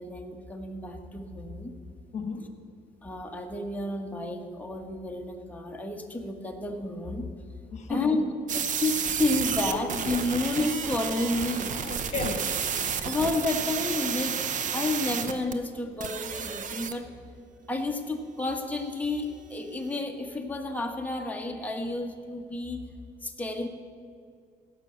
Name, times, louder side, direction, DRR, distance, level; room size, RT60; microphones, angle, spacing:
voice 1, 0.0-1.7 3.0-7.3 7.9-8.2 8.8-11.8 13.0-14.4 14.7-17.1 17.7-22.8 23.2-23.7, left 2 dB, 10° left, 2 dB, 1.4 m, -31 dB
voice 2, 2.1-2.5 7.7-8.4 9.7-9.9 11.8-12.5, left 4 dB, 45° left, 6 dB, 1.6 m, -33 dB
sound 1, 8.5-15.5 16.0-16.9, right 7 dB, 50° right, 0.9 m, -31 dB
16.5 x 6.3 x 6.8 m, 2.2 s
cardioid pair, 110°, 17 cm